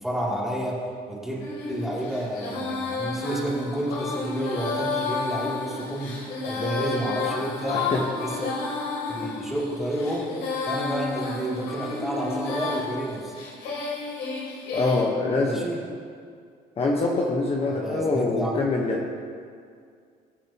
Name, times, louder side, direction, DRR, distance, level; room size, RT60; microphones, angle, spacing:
voice 1, 0.0-1.4 1.7-7.9 8.2-8.5 9.1-10.3 10.6-13.3 15.4-15.8 17.7-18.6, right 1 dB, ahead, -6 dB, 2.9 m, -30 dB
Female singing, 1.4-15.0, left 3 dB, 90° left, 3.0 m, -31 dB
voice 2, 7.7-8.1 14.7-15.6 16.8-19.1, left 3 dB, 35° left, -1 dB, 1.2 m, -24 dB
21.0 x 7.4 x 3.0 m, 2.2 s
cardioid pair, 110°, 17 cm